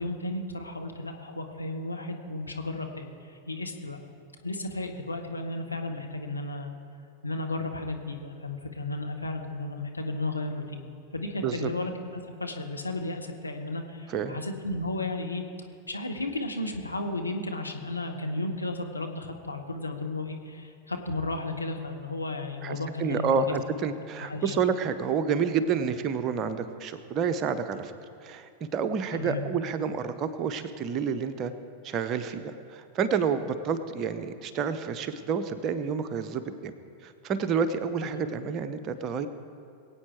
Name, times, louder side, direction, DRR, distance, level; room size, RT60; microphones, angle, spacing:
voice 1, 0.0-4.0 4.4-6.7 7.2-10.8 11.1-15.4 15.9-23.6 24.2-24.6 29.1-29.4 38.2-38.3, left 2 dB, 85° left, 3 dB, 1.2 m, -34 dB
voice 2, 14.1-14.4 22.6-27.9 28.2-31.5 31.8-36.7 37.0-39.3, right 6 dB, 35° right, 9 dB, 0.8 m, -29 dB
22.5 x 8.6 x 4.6 m, 2.5 s
figure-of-eight pair, 90°, 0 cm